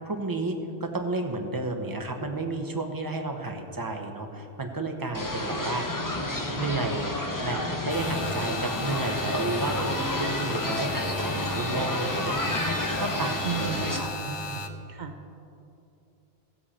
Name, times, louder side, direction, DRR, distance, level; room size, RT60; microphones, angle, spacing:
voice 1, 0.0-5.9 6.6-7.1 7.4-14.6, right 2 dB, 20° right, 4 dB, 0.8 m, -32 dB
sound 1, 5.1-14.0, left 1 dB, 20° left, 0.9 m, -30 dB
sound 2, 7.9-14.7, left 2 dB, 35° left, 0.5 m, -35 dB
voice 2, 13.4-13.9 14.9-15.3, right 8 dB, 50° right, 7 dB, 0.7 m, -33 dB
16.5 x 7.6 x 4.3 m, 2.7 s
omnidirectional pair, 1.1 m